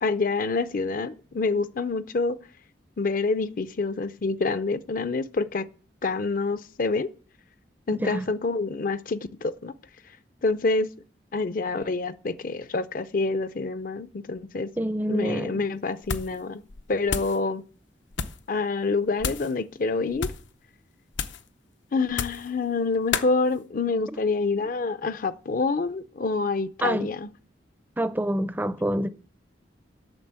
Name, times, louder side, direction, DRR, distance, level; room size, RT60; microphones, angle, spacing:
voice 1, 0.0-2.4 3.0-5.7 6.0-7.1 7.9-9.7 10.4-10.9 11.3-14.7 15.1-16.6 16.9-17.6 18.5-20.3 21.9-27.3, left 3 dB, 45° left, 0.5 m, -27 dB
voice 2, 7.9-8.3 14.8-15.6 26.8-27.1 28.0-29.1, right 1 dB, 10° right, 0.5 m, -27 dB
sound 1, 16.0-16.4 16.7-17.4 18.1-18.5 19.2-19.5 20.1-20.5 21.1-21.5 22.1-22.5 23.1-23.3, left 6 dB, 85° left, 0.7 m, -31 dB
8.9 x 6.7 x 8.6 m
head